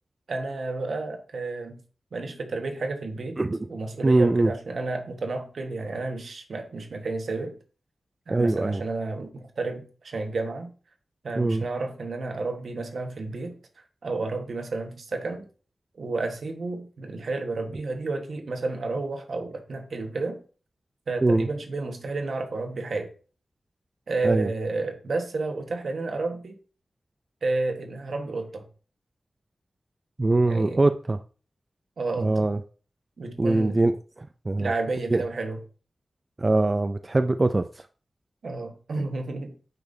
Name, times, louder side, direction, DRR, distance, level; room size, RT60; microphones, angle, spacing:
voice 1, 0.3-1.8 2.1-3.4 3.7-7.6 8.3-10.7 11.2-13.6 14.0-15.4 16.0-20.4 21.1-23.1 24.1-26.5 27.4-28.7 30.5-30.8 32.0-32.4 33.2-33.8 34.6-35.6 38.4-39.6, right 3 dB, 75° right, 1.4 m, -31 dB
voice 2, 4.0-4.5 8.3-8.8 11.4-11.6 21.2-21.5 24.2-24.5 30.2-31.2 32.2-32.6 33.4-33.9 34.5-34.7 35.1-35.2 36.4-37.7, right 2 dB, 30° right, 0.4 m, -22 dB
8.8 x 5.8 x 2.7 m
wide cardioid pair, 125°, 0 cm